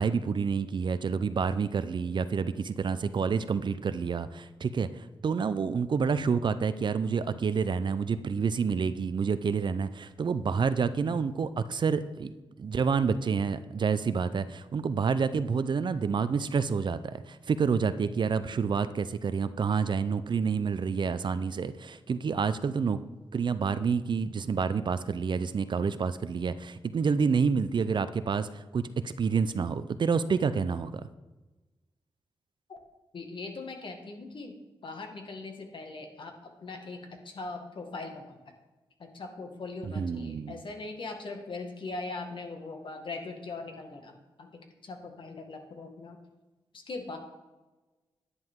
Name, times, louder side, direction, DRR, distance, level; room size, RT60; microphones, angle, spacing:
voice 1, 0.0-12.3 12.6-23.0 23.3-31.0 39.8-40.6, right 5 dB, 55° right, 13 dB, 0.6 m, -28 dB
voice 2, 33.1-34.6 34.8-38.4 39.0-46.2 46.7-47.2, left 3 dB, 60° left, 4 dB, 1.8 m, -40 dB
10.5 x 9.6 x 3.7 m, 1.1 s
cardioid pair, 90°, 10 cm